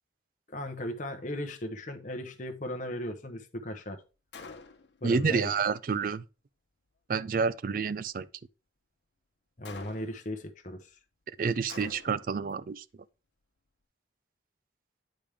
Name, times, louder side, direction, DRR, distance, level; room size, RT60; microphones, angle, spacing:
voice 1, 0.5-4.0 5.0-5.5 9.6-11.0, left 1 dB, 45° left, 0.8 m, -37 dB
Gunshot gunfire, 4.3-5.0 9.6-10.3 11.7-12.4, left 4 dB, 75° left, 1.0 m, -46 dB
voice 2, 5.0-6.2 7.1-8.3 11.4-12.8, right 5 dB, 50° right, 0.4 m, -29 dB
8.8 x 5.1 x 3.4 m
head